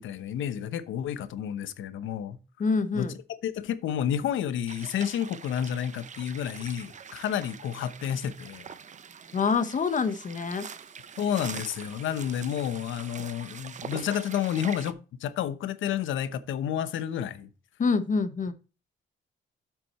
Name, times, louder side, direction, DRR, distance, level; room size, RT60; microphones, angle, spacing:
voice 1, 0.0-2.4 2.9-3.1 3.4-8.6 11.2-17.5, left 9 dB, 75° left, 0.9 m, -30 dB
voice 2, 2.6-3.1 9.3-10.7 17.8-18.5, left 5 dB, 40° left, 0.9 m, -26 dB
sound 1, 4.7-14.9, right 7 dB, 40° right, 0.7 m, -44 dB
sound 2, 9.2-14.0, right 5 dB, 70° right, 4.1 m, -59 dB
8.4 x 6.2 x 4.2 m
cardioid pair, 90°, 20 cm